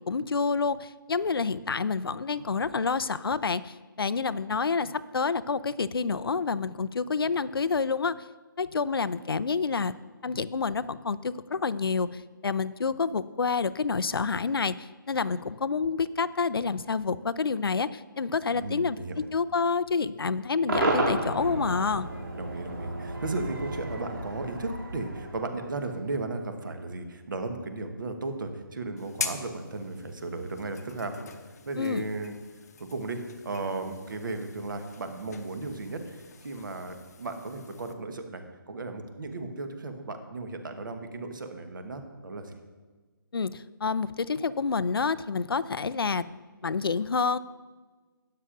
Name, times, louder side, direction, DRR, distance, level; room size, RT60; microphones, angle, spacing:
voice 1, 0.0-8.2 8.6-10.0 10.2-19.0 19.3-22.1 31.8-32.1 43.3-46.2 46.6-47.4, left 5 dB, 90° left, 16 dB, 0.4 m, -28 dB
voice 2, 18.5-19.2 22.4-31.1 31.7-32.4 32.8-42.6, right 3 dB, 60° right, 6 dB, 1.2 m, -35 dB
Cheering / Crowd / Fireworks, 20.7-26.0, right 2 dB, 80° right, 2.6 m, -32 dB
sound 1, 29.0-37.9, left 6 dB, 45° left, 0.8 m, -43 dB
12.0 x 8.8 x 2.5 m, 1.3 s
figure-of-eight pair, 160°, 12 cm